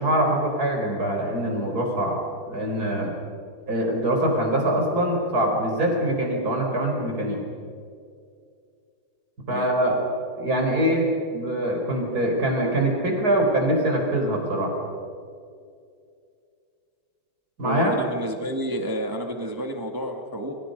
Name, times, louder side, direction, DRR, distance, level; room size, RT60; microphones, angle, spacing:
voice 1, 0.0-2.2 2.5-3.1 3.7-7.4 9.5-10.0 10.4-14.7 17.6-17.9, right 1 dB, 40° right, 1 dB, 4.8 m, -23 dB
voice 2, 17.6-20.6, right 1 dB, 10° right, 4 dB, 1.5 m, -30 dB
29.5 x 24.5 x 5.3 m, 2.3 s
omnidirectional pair, 2.4 m